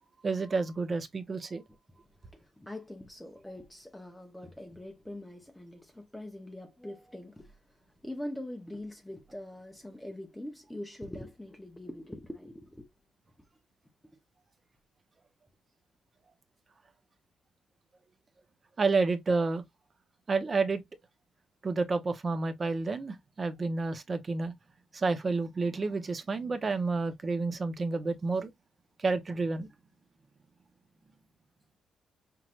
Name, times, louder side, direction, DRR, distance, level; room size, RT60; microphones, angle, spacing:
voice 1, 0.2-1.6 18.8-19.6 20.3-20.8 21.6-24.5 24.9-28.5 29.0-29.7, right 3 dB, 30° right, 0.9 m, -30 dB
voice 2, 2.0-12.9 13.4-13.5, left 1 dB, 5° left, 0.8 m, -43 dB
5.7 x 3.2 x 2.4 m
cardioid pair, 140°, 0 cm